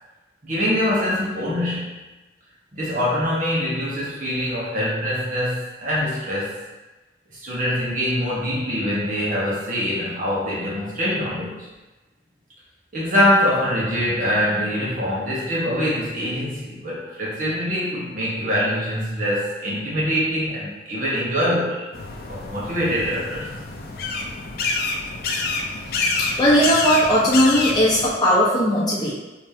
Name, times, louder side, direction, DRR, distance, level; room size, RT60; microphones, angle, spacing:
voice 1, 0.4-1.9 2.7-6.5 7.4-11.7 12.9-21.8 22.3-23.5, equal, 45° right, -6 dB, 1.3 m, -24 dB
sound 1, 21.9-28.1, left 3 dB, 55° left, 0.5 m, -27 dB
voice 2, 26.2-29.1, equal, 20° left, -7 dB, 1.0 m, -18 dB
5.0 x 3.2 x 2.9 m, 1.1 s
head